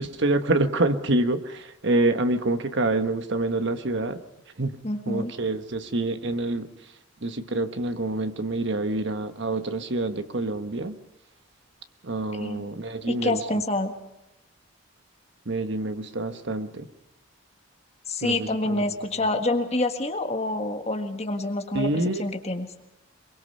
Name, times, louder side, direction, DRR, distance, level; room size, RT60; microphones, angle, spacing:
voice 1, 0.0-4.2 4.6-4.8 5.1-6.7 7.2-11.0 12.0-13.4 15.4-16.9 18.2-18.8 21.7-22.3, right 2 dB, 55° right, 9 dB, 1.3 m, -26 dB
voice 2, 4.8-5.3 12.4-12.6 13.1-13.9 18.1-22.7, left 2 dB, 30° left, 5 dB, 1.7 m, -27 dB
23.5 x 23.0 x 5.5 m, 0.87 s
head